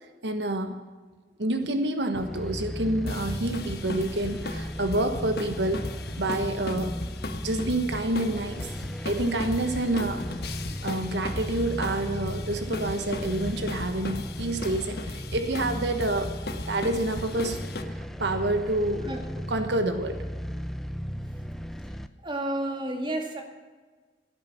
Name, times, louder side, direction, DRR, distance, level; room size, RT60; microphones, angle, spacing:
voice 1, 0.2-0.8 1.4-5.9 6.2-7.0 7.4-8.7 9.0-10.2 10.8-16.3 16.7-17.6 17.9-19.1 19.5-20.2, right 1 dB, 75° right, 7 dB, 1.3 m, -28 dB
sound 1, 2.1-22.1, equal, ahead, 0.6 m, -36 dB
sound 2, 3.1-17.8, left 2 dB, 60° left, 1.2 m, -37 dB
voice 2, 22.2-23.4, right 1 dB, 25° right, 3 dB, 2.2 m, -31 dB
17.0 x 9.3 x 7.2 m, 1.4 s
head